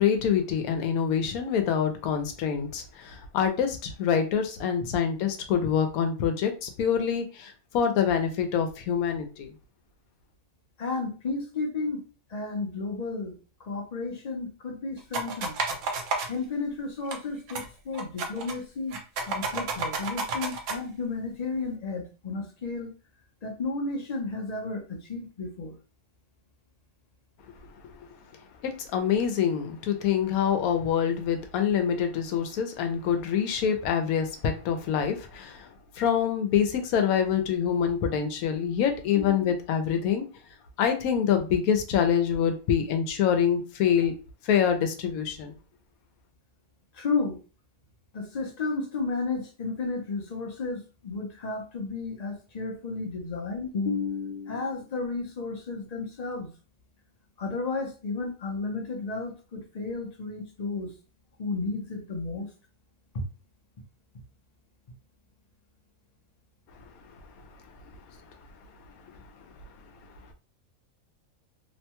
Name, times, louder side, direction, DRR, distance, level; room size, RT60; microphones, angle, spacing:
voice 1, 0.0-9.5 28.6-35.7 36.0-40.3 40.8-44.1 44.4-45.5, left 8 dB, 80° left, 6 dB, 1.1 m, -26 dB
voice 2, 10.8-12.0 12.3-13.4 13.7-15.6 16.3-22.9 23.4-25.7 39.1-39.3 46.9-47.4 48.1-56.5 57.4-60.9 61.4-62.5 63.1-63.2, left 3 dB, 45° left, 2 dB, 0.5 m, -32 dB
sound 1, 15.1-16.3 17.1-17.2 17.5-17.7 17.9-18.6 18.9-20.8, right 3 dB, 65° right, 0.9 m, -30 dB
3.0 x 2.2 x 2.8 m, 0.34 s
omnidirectional pair, 1.5 m